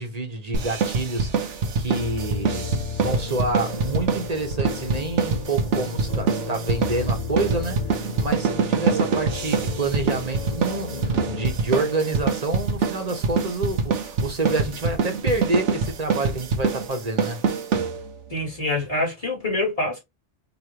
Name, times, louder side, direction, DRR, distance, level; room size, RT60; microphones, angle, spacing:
voice 1, 0.0-2.7 3.0-17.5, right 2 dB, 35° right, 1.2 m, -28 dB
sound 1, 0.5-18.3, right 5 dB, 75° right, 1.2 m, -25 dB
sound 2, 1.9-11.5, left 5 dB, 50° left, 0.6 m, -34 dB
voice 2, 18.3-20.0, left 2 dB, 30° left, 2.9 m, -25 dB
4.8 x 3.1 x 3.0 m
omnidirectional pair, 1.2 m